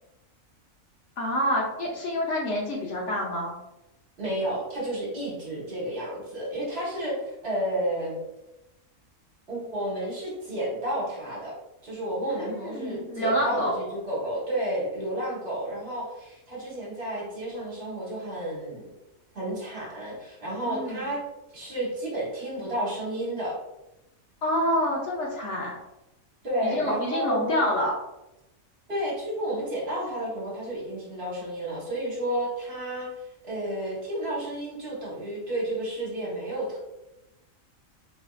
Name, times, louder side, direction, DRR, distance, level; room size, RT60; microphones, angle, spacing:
voice 1, 1.2-3.5 12.3-13.7 20.7-21.1 24.4-25.7 26.6-27.9, equal, 65° left, -2 dB, 0.9 m, -27 dB
voice 2, 4.2-8.2 9.5-11.5 11.8-18.9 19.3-21.2 21.5-23.5 26.4-27.7 28.9-33.1 33.4-36.8, right 1 dB, 50° right, -5 dB, 1.2 m, -31 dB
4.1 x 2.6 x 2.3 m, 0.94 s
omnidirectional pair, 1.5 m